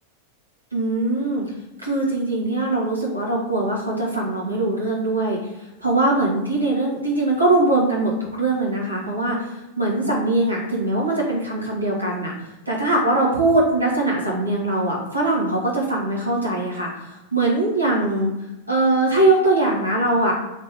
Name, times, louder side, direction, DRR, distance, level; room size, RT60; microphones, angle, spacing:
voice 1, 0.7-1.5 1.8-5.4 5.8-18.3 18.7-20.3, right 2 dB, 85° right, -4 dB, 1.4 m, -21 dB
3.3 x 3.2 x 4.8 m, 0.98 s
figure-of-eight pair, 90°, 0 cm